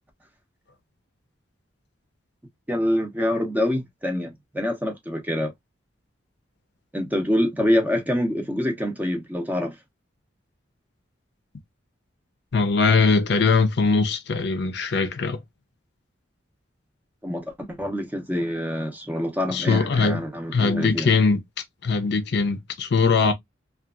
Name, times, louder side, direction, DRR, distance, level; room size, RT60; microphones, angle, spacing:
voice 1, 2.7-5.5 6.9-9.7 17.2-21.1, left 1 dB, 10° right, 0.6 m, -26 dB
voice 2, 12.5-15.4 19.5-20.2 20.5-21.4 21.8-23.3, left 4 dB, 55° left, 0.5 m, -21 dB
2.7 x 2.3 x 2.3 m
head